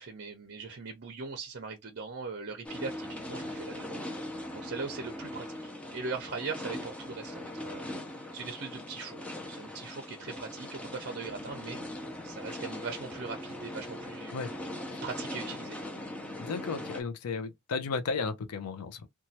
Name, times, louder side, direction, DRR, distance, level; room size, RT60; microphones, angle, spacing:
voice 1, 0.0-7.9 8.1-9.2 9.5-14.5 15.0-15.8, right 4 dB, 50° right, 0.6 m, -40 dB
sound 1, 2.6-17.0, left 1 dB, 5° left, 0.5 m, -40 dB
voice 2, 16.4-19.1, left 4 dB, 90° left, 0.5 m, -34 dB
3.0 x 2.2 x 2.7 m
head